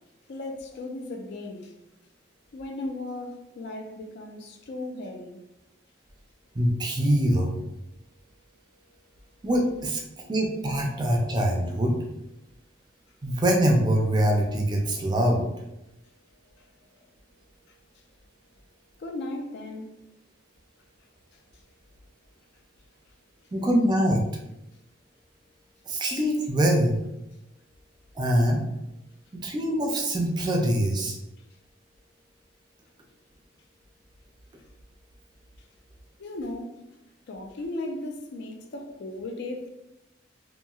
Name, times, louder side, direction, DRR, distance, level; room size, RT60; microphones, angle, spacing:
voice 1, 0.3-1.7 2.5-5.4 16.6-16.7 19.0-19.9 36.2-36.7 37.3-39.7, left 2 dB, 60° left, 0.4 m, -36 dB
voice 2, 6.6-7.6 9.4-11.9 13.2-15.4 23.5-24.3 25.9-27.0 28.2-28.6 29.3-31.2, right 1 dB, 20° right, 0.4 m, -24 dB
2.8 x 2.6 x 2.3 m
head